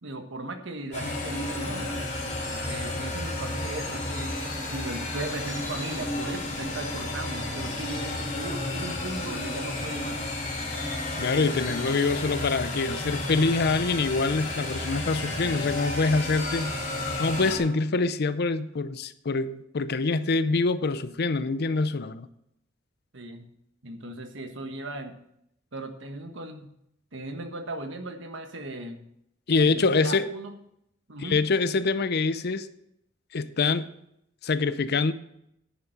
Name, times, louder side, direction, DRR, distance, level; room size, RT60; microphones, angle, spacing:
voice 1, 0.0-1.9 2.6-4.4 4.7-10.2 23.1-23.4 23.8-25.2 25.7-26.7 27.1-29.0 29.6-30.5 31.1-31.4, right 2 dB, 65° right, 6 dB, 1.4 m, -37 dB
sound 1, 0.9-17.6, left 2 dB, 35° left, 4.1 m, -32 dB
voice 2, 11.2-16.7 17.2-22.3 29.5-30.3 31.2-32.7 33.3-33.9 34.4-35.1, left 3 dB, 55° left, 14 dB, 0.6 m, -25 dB
10.5 x 7.2 x 6.4 m, 0.77 s
head